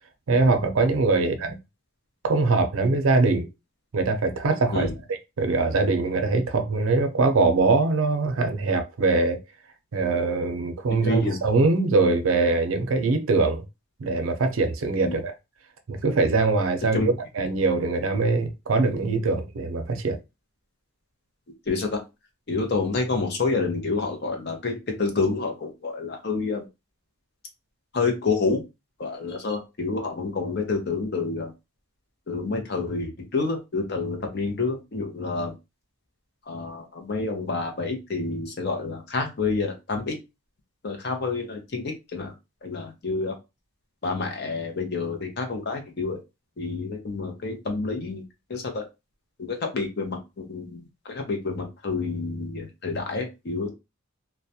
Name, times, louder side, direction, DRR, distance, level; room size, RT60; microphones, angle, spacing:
voice 1, 0.3-1.6 2.2-3.5 3.9-4.9 5.4-9.4 9.9-13.6 14.0-15.3 15.9-17.0 17.4-20.2, right 3 dB, 75° right, 0.5 m, -22 dB
voice 2, 11.0-11.4 15.0-15.2 16.8-17.1 21.7-22.0 22.5-26.6 27.9-28.6 29.0-31.5 32.3-35.5 36.5-40.2 40.8-42.3 42.6-43.3 44.0-46.2 46.6-48.2 48.5-48.8 49.4-53.7, left 3 dB, 50° left, 0.6 m, -28 dB
2.3 x 2.0 x 2.7 m
head